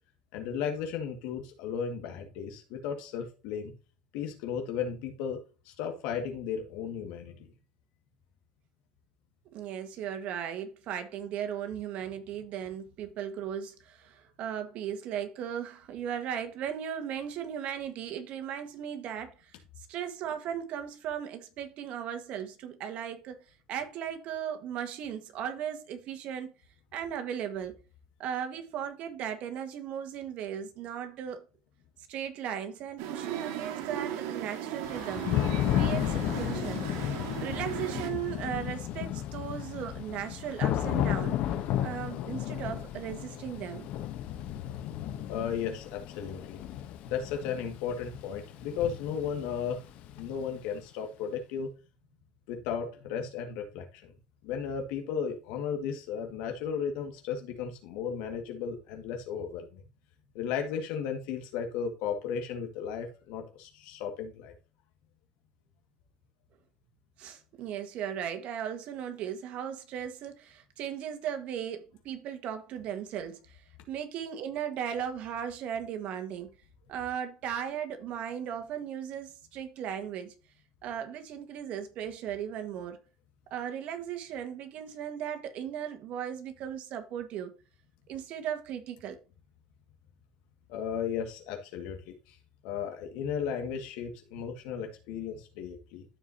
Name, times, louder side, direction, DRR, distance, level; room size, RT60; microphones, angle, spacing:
voice 1, 0.3-3.7 4.1-5.4 5.7-7.5 45.3-46.6 47.0-49.8 50.1-51.7 52.5-54.1 54.4-59.8 60.3-64.5 90.7-92.4 92.6-96.1, left 7 dB, 80° left, 1.9 m, -35 dB
voice 2, 9.5-19.5 19.9-23.4 23.7-26.5 26.9-27.8 28.2-31.4 32.1-35.3 35.8-36.9 37.4-41.5 41.8-43.9 67.2-73.6 73.9-76.5 76.9-80.3 80.8-83.0 83.5-87.5 88.1-89.2, right 9 dB, 60° right, 1.6 m, -37 dB
sound 1, 33.0-38.1, right 10 dB, 85° right, 1.8 m, -37 dB
Thunder / Rain, 34.8-50.6, left 11 dB, 65° left, 1.0 m, -33 dB
14.0 x 4.7 x 2.8 m
cardioid pair, 115°, 3 cm